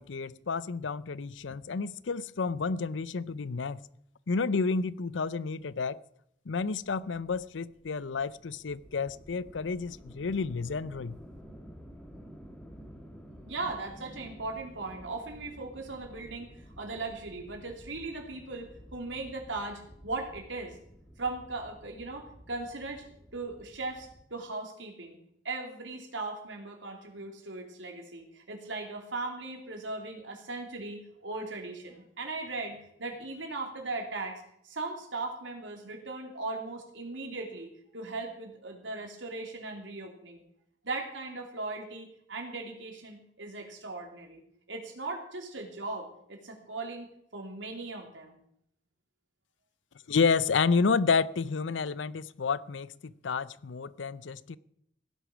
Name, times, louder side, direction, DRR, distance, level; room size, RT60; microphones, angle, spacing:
voice 1, 0.0-3.9 4.3-6.0 6.5-11.2 50.1-54.6, left 4 dB, 80° left, 0.6 m, -30 dB
sound 1, 6.7-24.2, equal, 5° left, 2.1 m, -51 dB
voice 2, 13.5-16.5 16.8-20.8 21.2-23.0 23.3-25.2 25.4-40.4 40.8-44.4 44.7-48.4, right 3 dB, 80° right, 3.1 m, -38 dB
16.5 x 10.0 x 6.1 m
head